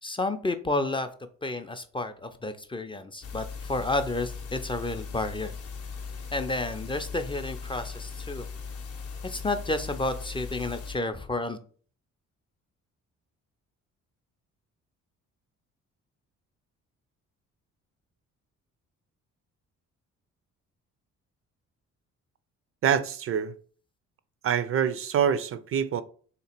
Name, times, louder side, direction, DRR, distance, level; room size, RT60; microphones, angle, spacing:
voice 1, 0.0-1.1 1.4-5.5 6.3-8.4 9.2-11.6, left 2 dB, 15° left, 0.4 m, -31 dB
sound 1, 3.2-11.0, left 5 dB, 50° left, 0.7 m, -39 dB
voice 2, 22.8-23.5 24.4-26.0, right 8 dB, 50° right, 0.4 m, -25 dB
3.2 x 2.9 x 4.3 m
cardioid pair, 90°, 30 cm